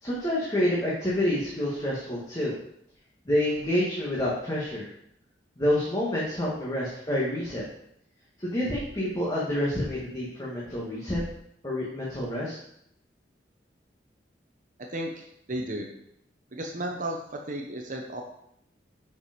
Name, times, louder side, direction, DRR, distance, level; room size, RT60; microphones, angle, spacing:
voice 1, 0.0-2.5 3.2-4.9 5.6-7.6 8.4-11.2 11.6-12.6, left 1 dB, 20° left, -7 dB, 1.6 m, -28 dB
voice 2, 14.8-15.9 16.5-18.2, right 1 dB, 50° right, 1 dB, 0.9 m, -34 dB
7.0 x 4.8 x 5.1 m, 0.74 s
head